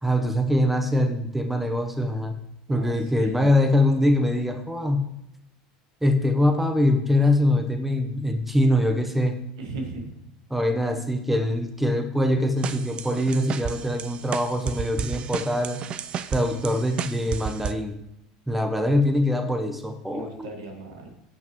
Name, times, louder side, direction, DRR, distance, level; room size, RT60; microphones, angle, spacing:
voice 1, 0.0-2.3 2.7-5.2 6.0-9.4 10.5-15.8 16.3-18.0 18.5-20.5, left 1 dB, 5° right, 6 dB, 1.0 m, -23 dB
voice 2, 2.7-3.6 9.6-10.1 20.1-21.1, right 3 dB, 75° right, 3 dB, 1.9 m, -37 dB
sound 1, 12.6-17.7, right 8 dB, 40° right, 0.5 m, -33 dB
15.5 x 5.9 x 3.1 m, 0.83 s
hypercardioid pair, 85°, 3 cm